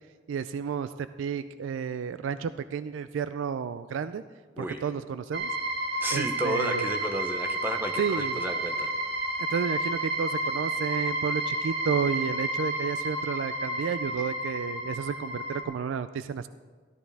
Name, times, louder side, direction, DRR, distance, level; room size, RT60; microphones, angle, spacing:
voice 1, 0.3-4.2 4.6-5.5 6.1-6.9 8.0-8.4 9.4-16.5, right 6 dB, 85° right, 13 dB, 0.3 m, -31 dB
sound 1, 5.3-15.6, right 1 dB, 60° right, 1.3 m, -31 dB
voice 2, 6.0-8.9, right 1 dB, 10° right, 5 dB, 0.7 m, -32 dB
13.5 x 12.5 x 3.4 m, 1.5 s
head